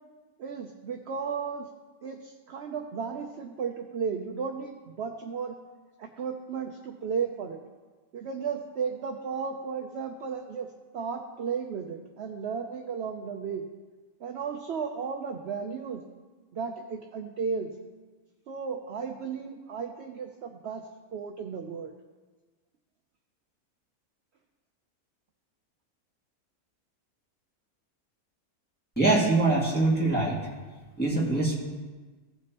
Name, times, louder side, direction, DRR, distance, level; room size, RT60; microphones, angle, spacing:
voice 1, 0.4-1.7 2.0-5.6 6.0-7.6 8.1-10.7 10.9-13.6 14.2-16.0 16.5-17.7 18.5-20.8 21.1-21.9, right 6 dB, 60° right, 3 dB, 0.8 m, -34 dB
voice 2, 29.0-30.4 31.0-31.6, right 2 dB, 5° left, -6 dB, 1.9 m, -23 dB
16.5 x 6.1 x 3.0 m, 1.3 s
omnidirectional pair, 1.6 m